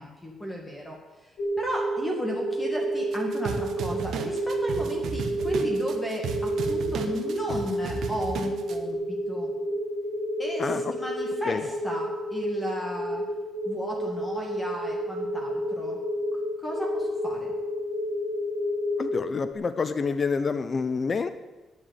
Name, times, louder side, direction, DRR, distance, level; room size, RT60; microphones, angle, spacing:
voice 1, 0.0-9.5 10.4-13.2 13.7-16.0 16.3-17.5, equal, 10° left, 0 dB, 2.1 m, -35 dB
sound 1, 1.4-19.5, right 1 dB, 65° left, 1.9 m, -30 dB
sound 2, 3.1-8.8, right 5 dB, 65° right, 1.2 m, -35 dB
voice 2, 10.6-10.9 11.5-11.6 19.0-21.3, left 5 dB, 30° left, 12 dB, 0.6 m, -27 dB
10.5 x 9.8 x 8.5 m, 1.1 s
cardioid pair, 160°, 0 cm